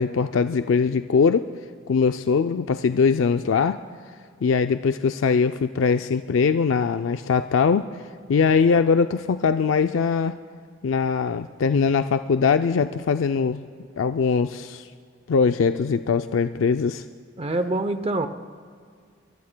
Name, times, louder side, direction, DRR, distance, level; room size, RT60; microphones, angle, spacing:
voice 1, 0.0-1.5 1.9-3.8 4.4-7.9 8.3-10.4 10.8-13.6 14.0-14.9 15.3-17.0, left 5 dB, 85° left, 9 dB, 0.4 m, -21 dB
voice 2, 17.4-18.3, right 2 dB, 30° right, 9 dB, 0.6 m, -25 dB
24.5 x 23.0 x 2.2 m, 2.1 s
head